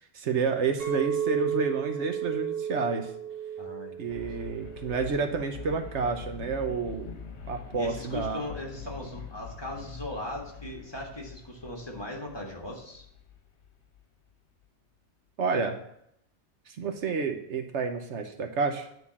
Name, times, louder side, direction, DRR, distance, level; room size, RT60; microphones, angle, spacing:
voice 1, 0.1-3.1 4.0-7.2 7.5-8.4 15.4-15.8 16.7-18.9, right 5 dB, 75° right, 6 dB, 1.2 m, -30 dB
Chink clink, 0.8-5.1 5.6-6.0, right 9 dB, 55° right, 1.8 m, -33 dB
voice 2, 3.6-4.5 7.8-13.1, left 1 dB, 20° left, -2 dB, 1.8 m, -39 dB
sound 1, 4.1-14.0, left 6 dB, 70° left, 1.3 m, -44 dB
9.7 x 3.9 x 7.0 m, 0.74 s
omnidirectional pair, 1.2 m